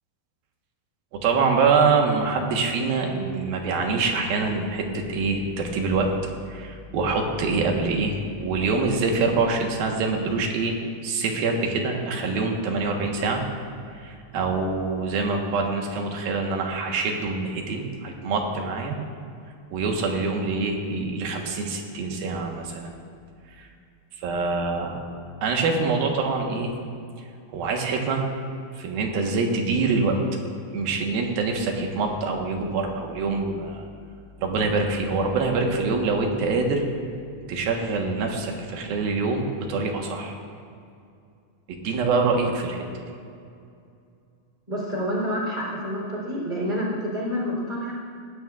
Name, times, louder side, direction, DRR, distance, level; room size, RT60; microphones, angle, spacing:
voice 1, 1.1-6.1 6.5-10.8 11.0-13.4 14.0-19.0 19.7-22.9 24.2-25.0 25.4-26.7 27.5-28.2 28.8-30.2 30.7-33.9 34.4-36.9 37.5-40.3 41.7-42.8, right 4 dB, 75° right, 2 dB, 3.1 m, -25 dB
voice 2, 44.7-47.9, equal, 10° right, -5 dB, 3.4 m, -28 dB
19.0 x 16.0 x 2.5 m, 2.4 s
omnidirectional pair, 4.4 m